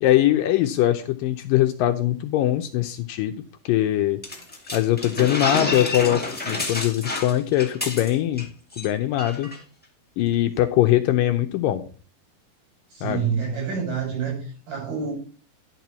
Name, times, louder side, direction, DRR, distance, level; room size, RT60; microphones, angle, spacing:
voice 1, 0.0-3.3 3.7-4.2 4.7-8.5 8.8-9.5 10.2-11.8 13.0-13.3, left 13 dB, 75° left, 2.2 m, -22 dB
sound 1, 4.2-8.4 8.7-8.9 9.2-9.6, left 3 dB, 5° left, 0.8 m, -29 dB
voice 2, 12.9-15.1, right 6 dB, 75° right, 7.9 m, -27 dB
11.0 x 4.5 x 6.8 m
omnidirectional pair, 4.4 m